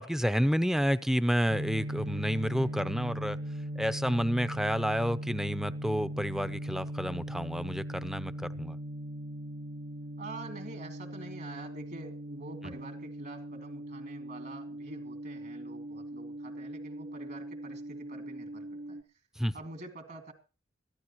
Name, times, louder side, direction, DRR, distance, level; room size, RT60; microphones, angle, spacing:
voice 1, 0.0-3.4 3.8-8.8 12.6-12.7 19.4-19.5, equal, 5° right, 12 dB, 0.7 m, -30 dB
sound 1, 1.5-19.0, right 1 dB, 80° right, 1.4 m, -39 dB
voice 2, 10.2-19.0 19.5-20.3, right 2 dB, 60° right, 4 dB, 2.8 m, -46 dB
22.0 x 14.5 x 3.1 m, 0.33 s
head